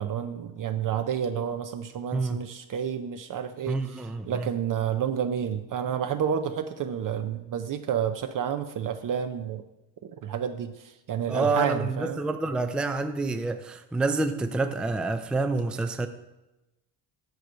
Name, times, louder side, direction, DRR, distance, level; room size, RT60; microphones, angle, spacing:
voice 1, 0.0-9.6 10.0-12.3, right 8 dB, 45° right, 8 dB, 0.6 m, -30 dB
voice 2, 2.1-2.4 3.7-4.5 11.3-16.1, right 3 dB, ahead, 8 dB, 0.4 m, -28 dB
8.0 x 4.5 x 6.7 m, 1.0 s
cardioid pair, 105°, 44 cm